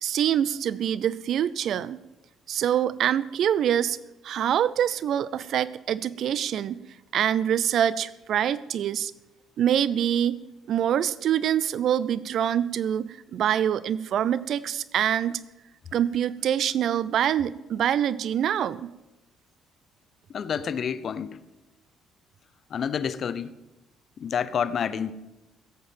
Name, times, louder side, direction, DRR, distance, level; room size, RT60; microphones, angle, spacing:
voice 1, 0.0-2.0 2.5-4.0 4.2-6.8 7.1-9.1 9.6-10.4 10.7-15.4 15.9-18.9, right 10 dB, 60° right, 18 dB, 0.6 m, -25 dB
voice 2, 20.3-21.4 22.7-23.5 24.2-25.1, left 7 dB, 55° left, 15 dB, 0.9 m, -29 dB
16.0 x 8.2 x 7.5 m, 1.0 s
hypercardioid pair, 50°, 0 cm